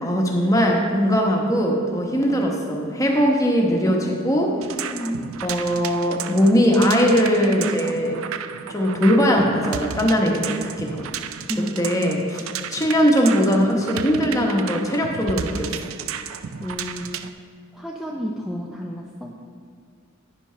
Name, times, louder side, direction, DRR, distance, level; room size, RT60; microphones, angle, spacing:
voice 1, 0.0-4.6 5.4-8.2 8.7-11.1 11.8-15.7, equal, 15° left, 0 dB, 1.0 m, -20 dB
sound 1, 4.6-17.3, right 8 dB, 80° right, 0.4 m, -33 dB
voice 2, 4.8-5.3 11.5-12.0 16.6-17.3 17.7-19.4, equal, ahead, -1 dB, 0.5 m, -31 dB
9.7 x 5.3 x 5.5 m, 2.2 s
head